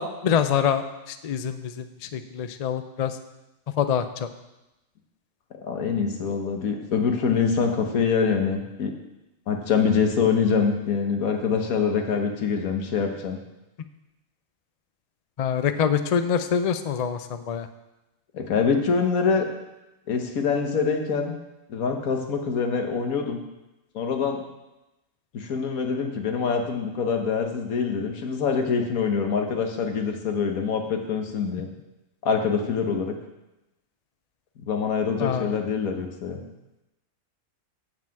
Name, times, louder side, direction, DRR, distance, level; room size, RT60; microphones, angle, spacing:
voice 1, 0.0-3.1 3.8-4.0 15.4-17.7 35.2-35.5, left 7 dB, 65° left, 9 dB, 0.3 m, -25 dB
voice 2, 5.6-8.9 9.5-13.4 18.3-19.5 20.1-21.3 21.7-23.4 23.9-24.4 25.3-31.7 32.2-33.1 34.6-36.4, left 5 dB, 85° left, 4 dB, 1.6 m, -25 dB
9.3 x 4.9 x 7.6 m, 0.97 s
omnidirectional pair, 1.4 m